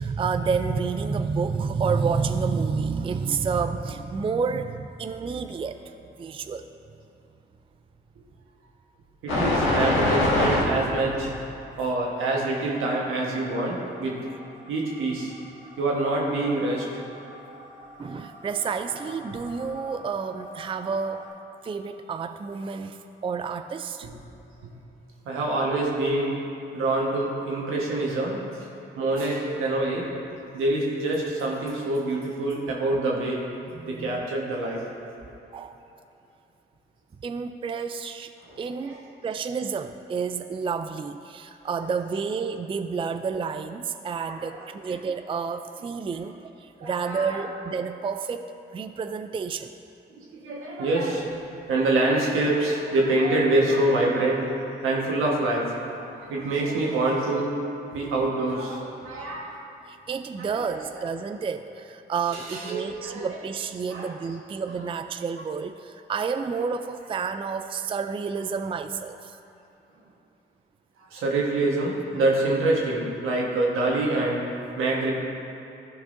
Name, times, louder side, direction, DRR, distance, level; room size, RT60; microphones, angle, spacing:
voice 1, 0.0-6.7 18.0-21.2 21.6-24.1 29.2-29.3 33.7-34.3 35.5-35.8 37.2-38.3 38.6-49.7 59.9-69.4, right 5 dB, 25° right, 9 dB, 0.4 m, -30 dB
voice 2, 9.2-11.3 11.8-14.2 14.7-15.3 15.8-17.0 25.2-26.3 26.7-28.7 29.0-30.1 30.5-33.4 33.9-34.9 38.7-39.0 44.2-44.3 46.8-47.4 50.1-51.3 51.7-57.5 57.9-59.5 60.4-60.5 62.3-63.3 63.9-64.1 71.1-75.1, right 2 dB, 80° right, -2 dB, 1.3 m, -26 dB
sound 1, 9.3-10.6 13.5-13.6 15.4-15.5 15.8-17.7 18.1-21.3, left 2 dB, 75° left, 1.5 m, -26 dB
14.0 x 4.7 x 2.6 m, 2.9 s
supercardioid pair, 50°, 21 cm